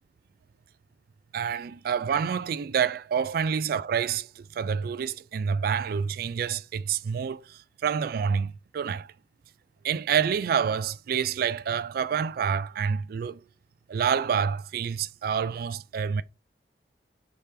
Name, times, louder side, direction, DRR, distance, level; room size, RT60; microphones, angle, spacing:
voice 1, 1.3-9.1 9.8-13.4 13.9-16.2, right 7 dB, 55° right, 0.3 m, -28 dB
5.1 x 2.9 x 3.3 m
head